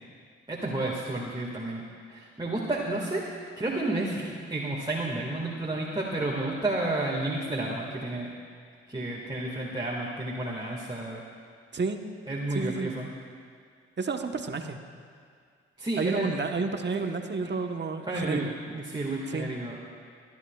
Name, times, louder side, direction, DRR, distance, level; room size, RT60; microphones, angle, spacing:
voice 1, 0.5-1.8 2.1-3.2 3.6-8.3 8.9-11.2 12.3-13.1 15.8-16.3 17.4-17.5 18.1-18.4 18.7-19.8, right 2 dB, 15° right, -4 dB, 2.0 m, -31 dB
voice 2, 11.7-12.1 12.5-12.9 14.0-14.8 16.0-18.6 19.3-19.5, right 4 dB, 35° right, 5 dB, 1.2 m, -30 dB
24.0 x 10.5 x 2.4 m, 2.2 s
hypercardioid pair, 40°, 31 cm